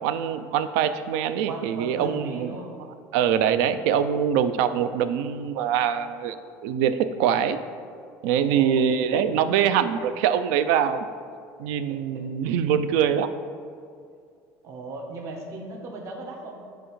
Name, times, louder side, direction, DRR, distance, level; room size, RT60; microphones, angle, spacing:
voice 1, 0.0-2.5 3.1-6.4 6.6-7.6 8.2-11.0 11.6-13.3, right 8 dB, 85° right, 11 dB, 0.4 m, -23 dB
voice 2, 1.5-2.7 8.3-8.9 11.9-12.6 14.6-16.6, right 3 dB, 45° right, 1 dB, 0.9 m, -37 dB
9.9 x 3.4 x 3.1 m, 2.3 s
cardioid pair, 135°, 7 cm